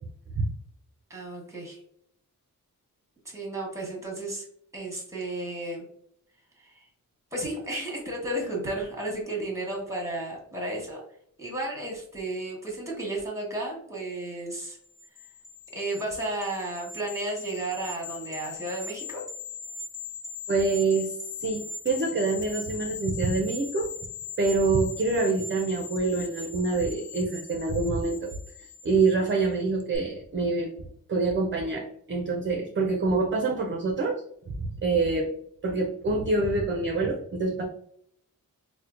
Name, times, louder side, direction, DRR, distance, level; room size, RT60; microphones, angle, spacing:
voice 1, 1.1-1.8 3.2-4.4 4.7-5.8 6.6-6.9 7.3-11.0 11.4-14.8 15.7-19.2, right 1 dB, 10° right, -1 dB, 1.0 m, -33 dB
sound 1, 14.8-29.5 29.8-30.0, left 5 dB, 25° left, 0.5 m, -40 dB
voice 2, 20.5-21.1 21.4-23.9 24.4-28.3 28.6-30.7 31.1-35.3 35.6-37.6, right 3 dB, 35° right, 2 dB, 0.4 m, -26 dB
4.2 x 2.1 x 2.4 m, 0.69 s
wide cardioid pair, 145°, 35 cm